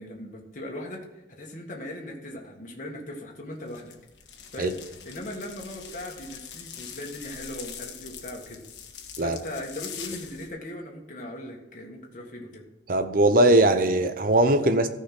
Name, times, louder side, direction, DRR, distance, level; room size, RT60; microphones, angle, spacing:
voice 1, 0.0-4.0 4.5-4.8 5.1-8.6 9.2-12.7, left 1 dB, 45° left, 0 dB, 1.8 m, -39 dB
sound 1, 3.7-10.5, left 8 dB, 70° left, 1.6 m, -43 dB
voice 2, 12.9-14.9, right 1 dB, 50° right, 10 dB, 0.9 m, -20 dB
14.0 x 5.7 x 6.0 m, 1.0 s
head